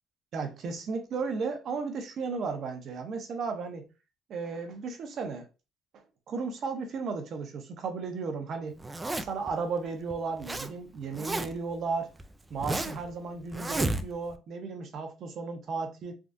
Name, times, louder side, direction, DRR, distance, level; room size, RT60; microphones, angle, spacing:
voice 1, 0.3-3.9 4.3-5.5 6.3-8.7 9.2-12.1 12.5-16.1, right 4 dB, 55° right, 0.7 m, -34 dB
Zipper (clothing), 8.8-9.5 10.1-10.7 10.9-11.7 12.2-13.1 13.5-14.3, right 2 dB, 15° right, 0.3 m, -32 dB
3.5 x 2.3 x 2.6 m
cardioid pair, 105°, 0 cm